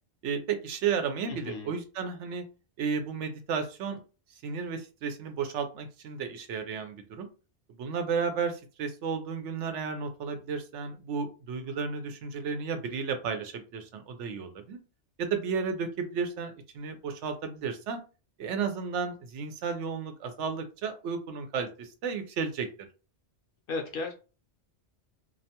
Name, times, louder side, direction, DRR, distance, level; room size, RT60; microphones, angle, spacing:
voice 1, 0.2-2.4 2.8-4.0 4.4-7.3 7.8-14.8 15.2-18.0 18.4-22.7, right 6 dB, 80° right, 7 dB, 0.9 m, -33 dB
voice 2, 1.3-1.7 23.7-24.1, left 3 dB, 60° left, 4 dB, 0.7 m, -35 dB
2.4 x 2.1 x 2.8 m, 0.33 s
omnidirectional pair, 1.2 m